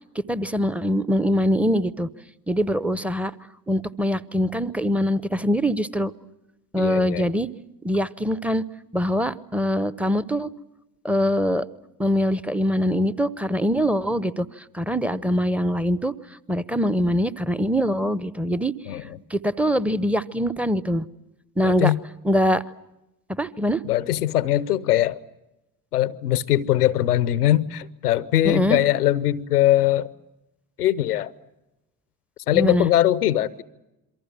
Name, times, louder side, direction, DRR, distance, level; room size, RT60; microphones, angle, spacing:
voice 1, 0.1-2.1 2.5-3.4 3.7-6.1 6.7-7.5 7.8-8.6 8.9-10.5 11.0-11.7 12.0-16.1 16.5-18.7 19.3-21.1 21.6-21.9 22.2-22.6 23.3-23.8 28.4-28.8 32.5-32.9, equal, 5° right, 0.9 m, -23 dB
voice 2, 6.8-7.3 18.9-19.2 21.6-22.0 23.8-25.2 25.9-30.1 30.8-31.3 32.5-33.6, left 13 dB, 80° left, 0.8 m, -21 dB
27.5 x 23.5 x 7.6 m
figure-of-eight pair, 50°, 45 cm